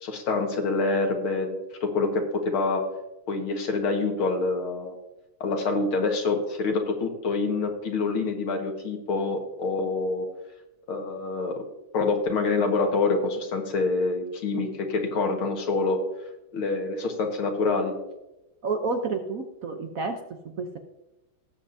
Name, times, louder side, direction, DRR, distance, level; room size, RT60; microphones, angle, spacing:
voice 1, 0.0-2.9 3.3-5.0 5.4-10.3 10.9-11.6 11.9-16.0 16.5-17.9, left 3 dB, 80° left, 3 dB, 2.4 m, -26 dB
voice 2, 18.6-20.2 20.6-20.8, right 4 dB, 55° right, 5 dB, 1.0 m, -29 dB
18.5 x 7.7 x 2.7 m, 0.97 s
omnidirectional pair, 2.3 m